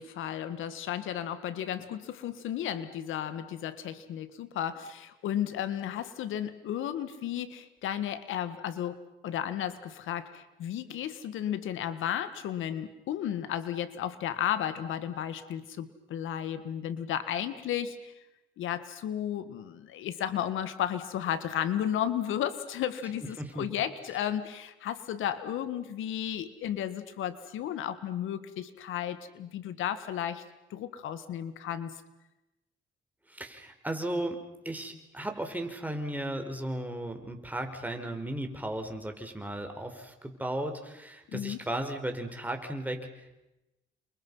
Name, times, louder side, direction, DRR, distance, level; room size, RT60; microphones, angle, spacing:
voice 1, 0.0-9.0 9.2-18.1 18.6-30.4 30.7-31.9 41.3-41.6, left 10 dB, 85° left, 12 dB, 1.9 m, -33 dB
voice 2, 23.4-23.7 33.3-34.4 34.6-43.4, right 1 dB, 10° right, 4 dB, 5.0 m, -35 dB
30.0 x 27.5 x 5.7 m, 0.95 s
cardioid pair, 90°, 20 cm